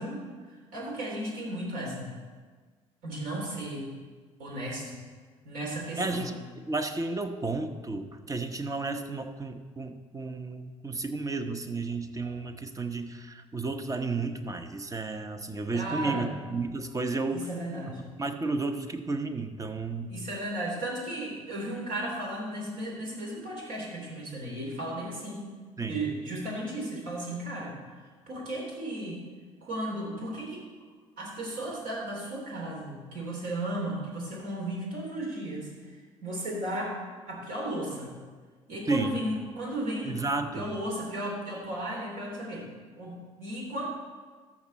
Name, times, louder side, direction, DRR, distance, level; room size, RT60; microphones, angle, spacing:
voice 1, 0.0-2.1 3.0-3.9 4.4-5.0 5.4-6.3 15.7-16.3 17.3-18.0 20.1-25.5 25.9-27.7 28.3-29.2 29.6-30.6 31.2-37.0 37.3-38.1 38.7-40.2 40.5-42.7 43.0-43.9, right 1 dB, 60° right, -2 dB, 3.2 m, -35 dB
voice 2, 6.0-6.4 6.6-17.5 18.2-20.1 25.8-26.0 38.9-39.2 40.0-40.8, right 3 dB, 20° right, 7 dB, 1.0 m, -32 dB
13.5 x 6.1 x 4.2 m, 1.5 s
hypercardioid pair, 55°, 16 cm